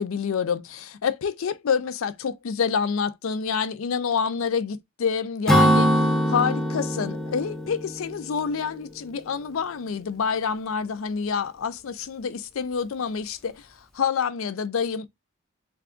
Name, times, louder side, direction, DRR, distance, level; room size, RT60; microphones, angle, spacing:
voice 1, 0.0-13.7 13.9-15.1, left 6 dB, 70° left, 0.4 m, -27 dB
Acoustic guitar / Strum, 5.5-9.1, equal, 5° left, 0.6 m, -23 dB
3.4 x 2.3 x 3.6 m
head